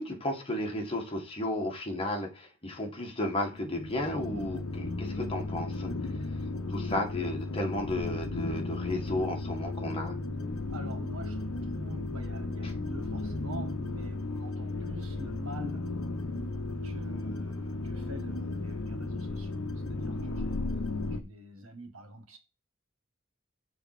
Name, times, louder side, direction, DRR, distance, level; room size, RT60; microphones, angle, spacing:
voice 1, 0.0-5.9 6.7-10.2 12.6-12.7, left 1 dB, 25° left, 1.9 m, -33 dB
sound 1, 3.5-21.2, left 2 dB, 80° left, 0.9 m, -35 dB
voice 2, 10.7-15.8 16.8-20.7 21.1-22.4, right 1 dB, 75° right, 1.6 m, -46 dB
7.0 x 4.3 x 4.8 m
head